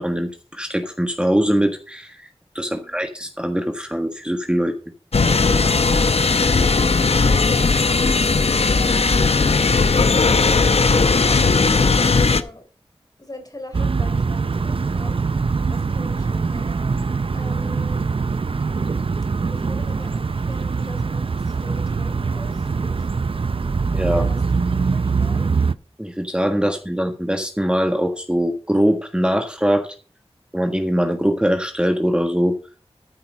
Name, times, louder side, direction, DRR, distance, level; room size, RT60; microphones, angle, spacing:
voice 1, 0.0-2.3 2.5-4.7 23.9-24.2 26.0-29.9 30.5-32.6, equal, 10° right, 5 dB, 1.5 m, -22 dB
voice 2, 2.7-3.0 12.3-12.7 13.2-15.2 15.7-16.7 17.3-18.1 19.4-23.1 24.1-24.4 24.8-25.5 26.6-26.7, left 2 dB, 35° left, 6 dB, 3.8 m, -41 dB
sound 1, 5.1-12.4, left 4 dB, 75° left, 0.8 m, -17 dB
sound 2, 13.7-25.7, right 4 dB, 60° right, 0.5 m, -23 dB
13.0 x 5.7 x 5.2 m, 0.38 s
wide cardioid pair, 40°, 11 cm